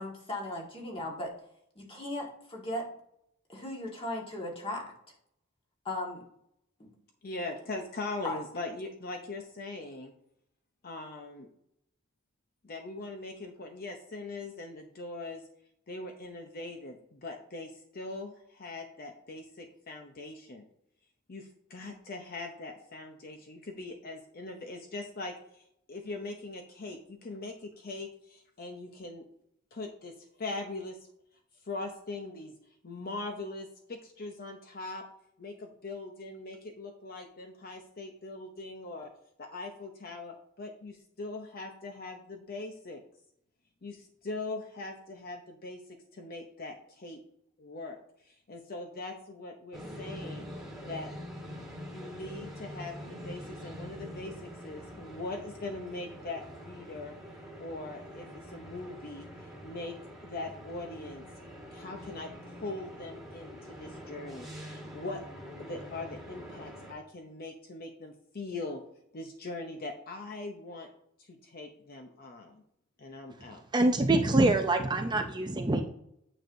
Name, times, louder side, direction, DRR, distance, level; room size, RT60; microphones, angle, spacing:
voice 1, 0.0-1.3 1.7-2.9 3.5-4.8 5.8-6.3 6.8-6.9 8.2-8.4, left 1 dB, 25° left, -1 dB, 1.7 m, -37 dB
voice 2, 7.2-10.1 10.8-11.5 12.6-15.4 15.9-20.6 21.3-29.2 29.7-30.1 30.4-31.0 31.6-32.5 32.8-35.0 35.4-39.1 39.4-43.0 43.8-45.8 46.1-47.2 47.6-48.0 48.3-50.5 50.9-51.1 51.9-57.1 57.6-59.9 60.2-61.2 61.7-65.2 65.6-68.8 69.1-70.9 71.2-72.6 73.0-73.6, left 2 dB, 45° left, 4 dB, 0.7 m, -41 dB
sound 1, 49.7-66.9, equal, ahead, 1.7 m, -45 dB
voice 3, 73.7-75.8, right 2 dB, 20° right, 5 dB, 0.5 m, -25 dB
9.0 x 6.1 x 2.6 m, 0.75 s
head